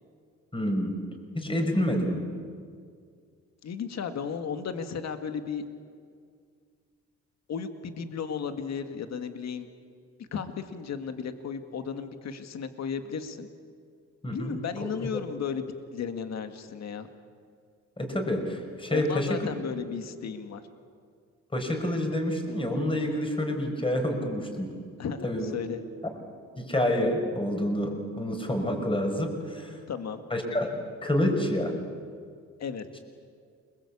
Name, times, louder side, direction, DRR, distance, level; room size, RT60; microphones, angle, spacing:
voice 1, 0.5-1.0 1.3-2.3 14.2-14.6 18.0-19.5 21.5-24.7 25.2-25.6 26.6-29.8 30.3-31.8, left 1 dB, 15° left, 4 dB, 5.7 m, -28 dB
voice 2, 3.6-5.6 7.5-9.7 10.2-13.5 14.3-17.1 18.9-20.6 25.0-25.8 29.7-30.2 32.6-33.0, left 6 dB, 60° left, 8 dB, 2.1 m, -34 dB
28.5 x 21.5 x 8.6 m, 2.1 s
cardioid pair, 90°, 30 cm